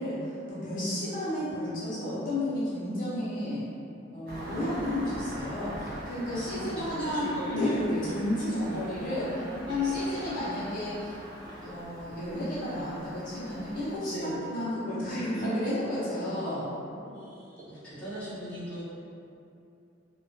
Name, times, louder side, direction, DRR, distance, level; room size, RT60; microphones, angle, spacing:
voice 1, 0.0-3.6 4.1-9.3 9.7-11.1 11.6-16.7, left 1 dB, 45° left, -10 dB, 0.6 m, -32 dB
voice 2, 0.6-1.0 6.3-7.8 8.5-10.3 13.4-14.4 16.9-18.8, right 1 dB, 5° left, -13 dB, 0.7 m, -41 dB
Engine starting, 4.3-14.0, equal, 50° right, 0.4 m, -43 dB
2.3 x 2.2 x 2.5 m, 2.7 s
head